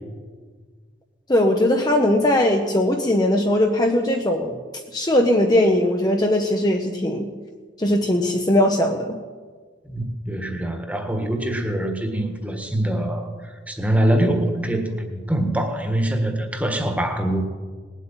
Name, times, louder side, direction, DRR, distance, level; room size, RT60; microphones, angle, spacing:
voice 1, 1.3-4.6 4.9-7.3 7.8-9.2, left 1 dB, 20° left, 2 dB, 0.8 m, -19 dB
voice 2, 9.9-13.3 13.7-17.4, right 1 dB, 5° right, 5 dB, 1.5 m, -24 dB
19.5 x 8.2 x 8.9 m, 1.5 s
head